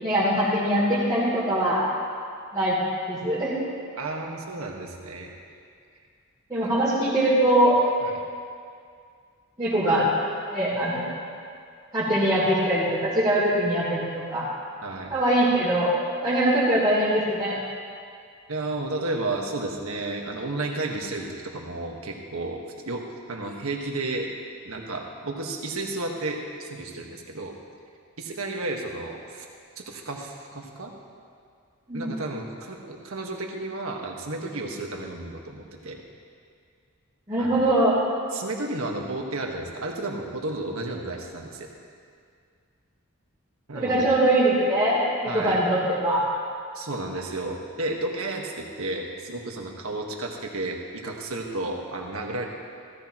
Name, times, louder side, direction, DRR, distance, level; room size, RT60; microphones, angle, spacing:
voice 1, 0.0-1.8 2.5-2.8 3.1-3.5 6.5-7.8 9.6-10.1 10.5-11.0 11.9-14.5 15.1-15.9 16.2-17.6 31.9-32.2 37.3-38.0 43.7-46.2, right 1 dB, 20° right, -12 dB, 3.2 m, -22 dB
voice 2, 3.9-5.3 6.6-6.7 8.0-8.2 14.8-15.1 18.5-23.0 23.3-24.3 24.6-27.5 28.2-29.4 29.9-30.9 31.9-36.0 37.4-37.6 38.3-41.7 43.7-44.1 45.2-45.6 46.7-52.5, right 2 dB, 75° right, 1 dB, 1.5 m, -32 dB
15.5 x 15.0 x 3.0 m, 2.2 s
head